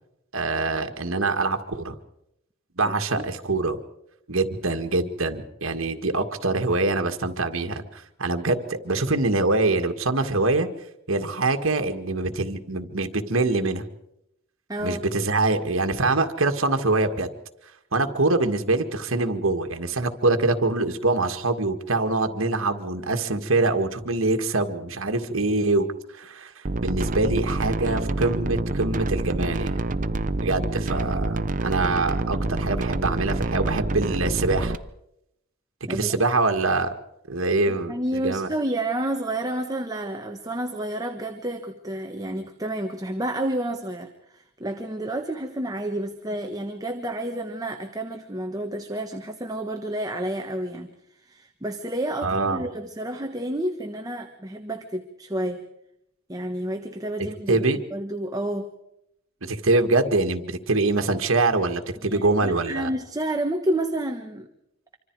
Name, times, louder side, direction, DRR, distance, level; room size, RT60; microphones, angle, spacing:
voice 1, 0.3-1.9 2.8-3.8 4.3-10.7 11.1-13.8 14.8-17.3 17.9-25.9 26.1-26.5 26.8-29.8 30.4-34.8 35.9-36.9 37.3-38.5 52.2-52.6 57.5-57.8 59.4-62.9, right 2 dB, 70° right, 6 dB, 1.8 m, -24 dB
voice 2, 2.8-3.2 14.7-15.0 35.9-36.1 37.7-55.6 56.3-57.6 57.9-58.7 62.0-64.5, right 1 dB, 20° right, 5 dB, 1.2 m, -30 dB
sound 1, 26.7-34.8, right 2 dB, 40° right, 0.7 m, -27 dB
26.0 x 25.0 x 4.7 m, 0.81 s
head